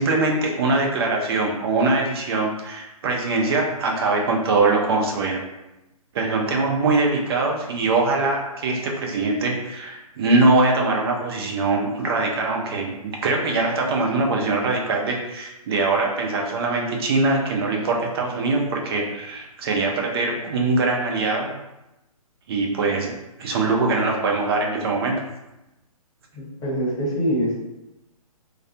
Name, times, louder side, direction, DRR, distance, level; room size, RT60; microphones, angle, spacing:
voice 1, 0.0-5.4 6.1-21.5 22.5-25.2, right 3 dB, 40° right, 0 dB, 0.5 m, -22 dB
voice 2, 26.3-27.5, equal, 20° left, -7 dB, 0.9 m, -24 dB
2.3 x 2.2 x 2.7 m, 0.95 s
hypercardioid pair, 135°, 19 cm